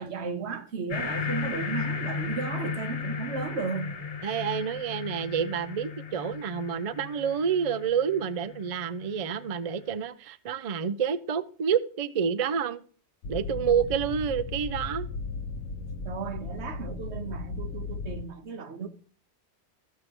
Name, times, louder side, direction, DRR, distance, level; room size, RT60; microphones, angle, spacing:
voice 1, 0.0-3.9 16.0-18.9, right 5 dB, 75° right, 1.2 m, -35 dB
sound 1, 0.9-9.8, left 5 dB, 45° left, 0.5 m, -35 dB
voice 2, 4.2-12.8 13.3-15.1, right 7 dB, 50° right, 0.4 m, -28 dB
sound 2, 13.2-18.2, left 3 dB, 90° left, 1.0 m, -36 dB
14.5 x 6.5 x 3.0 m
omnidirectional pair, 1.1 m